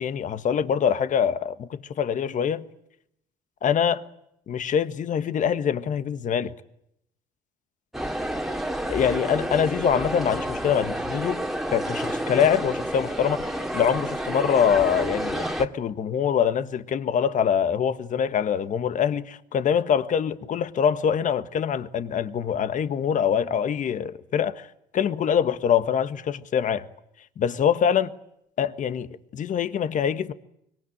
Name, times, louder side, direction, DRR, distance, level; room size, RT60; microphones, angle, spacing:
voice 1, 0.0-2.6 3.6-4.0 4.5-6.5 8.9-11.4 11.7-24.7 24.9-26.8 27.4-28.1 28.6-30.3, left 8 dB, 50° left, 1.5 m, -24 dB
sound 1, 7.9-15.7, right 1 dB, ahead, 2.2 m, -30 dB
25.5 x 23.5 x 8.8 m
cardioid pair, 110°, 17 cm